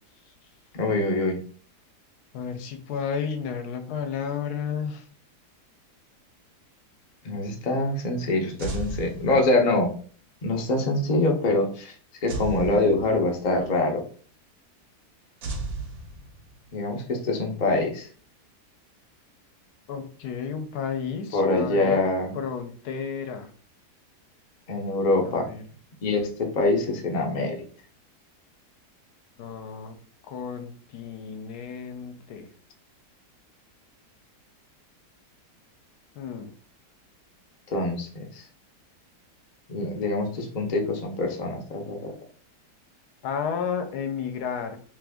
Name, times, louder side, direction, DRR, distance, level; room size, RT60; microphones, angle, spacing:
voice 1, 0.7-1.4 7.2-9.9 10.4-11.9 12.2-14.0 16.7-18.1 21.3-22.3 24.7-25.5 26.0-27.6 37.7-38.4 39.7-42.1, left 2 dB, 55° left, 1 dB, 0.5 m, -24 dB
voice 2, 2.3-5.0 19.9-22.0 22.3-23.5 25.2-25.6 29.4-30.0 30.3-32.5 36.2-36.5 43.2-44.8, left 7 dB, 75° left, 7 dB, 1.1 m, -32 dB
sound 1, 8.6-9.9 12.3-13.6 15.4-16.7, right 3 dB, 65° right, 1.0 m, -34 dB
3.0 x 2.5 x 3.5 m, 0.43 s
omnidirectional pair, 1.8 m